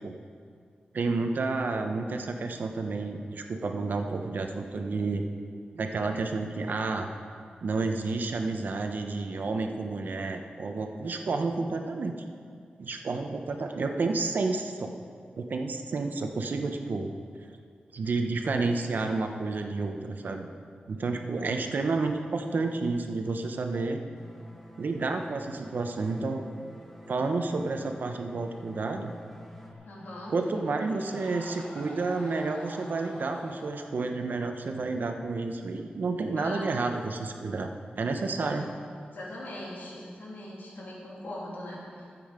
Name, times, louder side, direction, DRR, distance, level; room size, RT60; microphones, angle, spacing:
voice 1, 0.9-5.2 5.7-7.1 7.6-12.1 12.8-14.9 15.4-17.1 17.9-20.5 20.9-24.0 24.8-26.5 27.1-29.1 30.3-37.7 38.0-38.7, right 3 dB, 70° right, 5 dB, 0.9 m, -30 dB
sound 1, 24.2-29.7, left 1 dB, 5° left, 1.0 m, -48 dB
sound 2, 29.3-33.7, equal, 45° left, 2.8 m, -47 dB
voice 2, 29.8-30.3 36.4-36.7 37.1-37.4 38.4-38.7 39.1-42.0, left 1 dB, 80° left, -5 dB, 2.9 m, -41 dB
12.5 x 7.7 x 5.1 m, 2.2 s
wide cardioid pair, 110°, 3 cm